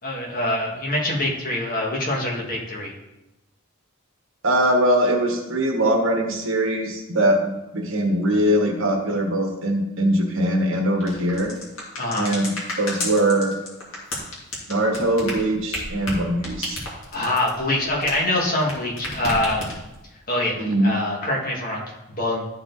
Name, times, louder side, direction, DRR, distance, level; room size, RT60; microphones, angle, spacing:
voice 1, 0.0-2.9 12.0-12.3 17.1-19.7 20.3-22.5, left 1 dB, 40° left, -3 dB, 1.9 m, -25 dB
voice 2, 4.4-11.5 12.2-13.5 14.7-16.8 20.6-20.9, right 1 dB, 60° right, 3 dB, 1.3 m, -21 dB
sound 1, 11.0-18.7 19.0-20.0, left 2 dB, 60° left, 2.6 m, -31 dB
13.0 x 4.7 x 4.0 m, 0.97 s
head